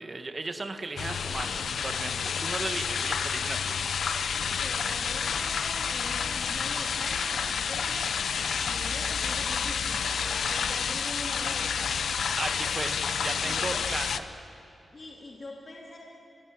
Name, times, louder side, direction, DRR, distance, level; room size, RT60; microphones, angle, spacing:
voice 1, 0.0-3.7 12.4-14.3, right 3 dB, 30° right, 7 dB, 1.6 m, -36 dB
sound 1, 1.0-14.2, left 6 dB, 75° left, 0.9 m, -29 dB
voice 2, 4.3-8.3 8.7-12.0 13.5-13.7 14.9-16.0, left 2 dB, 35° left, -3 dB, 3.2 m, -43 dB
29.0 x 18.0 x 9.0 m, 2.9 s
wide cardioid pair, 130°, 0 cm